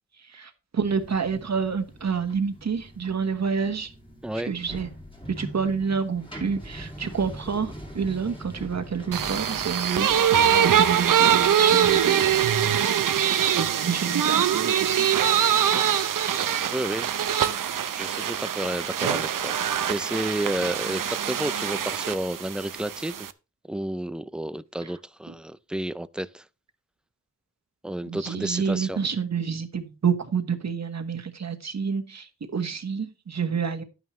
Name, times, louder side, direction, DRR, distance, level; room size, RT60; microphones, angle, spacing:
voice 1, 0.2-3.9 4.4-4.9 5.4-12.3 13.5-15.1 24.8-24.9 28.0-33.8, right 6 dB, 55° right, 1.4 m, -28 dB
sound 1, 0.8-12.8, equal, 15° left, 2.8 m, -43 dB
voice 2, 4.2-4.5 16.7-17.1 17.9-23.1 23.7-26.4 27.8-29.0, right 1 dB, 5° right, 0.4 m, -31 dB
sound 2, 9.1-23.3, right 9 dB, 85° right, 0.7 m, -23 dB
11.0 x 9.3 x 3.2 m
wide cardioid pair, 125°, 32 cm